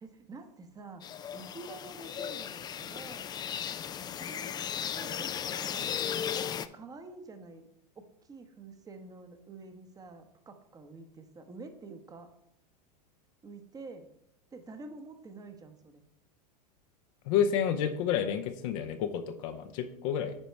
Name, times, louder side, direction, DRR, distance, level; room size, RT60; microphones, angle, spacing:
voice 1, 0.0-1.0 1.3-3.3 4.2-4.6 4.9-5.9 6.4-7.7 8.0-12.3 13.4-14.1 14.5-16.0, right 3 dB, 15° right, 7 dB, 0.9 m, -48 dB
sound 1, 1.0-6.7, left 9 dB, 20° left, 0.4 m, -36 dB
voice 2, 17.2-20.4, left 8 dB, 55° left, 7 dB, 0.7 m, -30 dB
9.8 x 4.1 x 4.5 m, 0.78 s
hypercardioid pair, 90°, 21 cm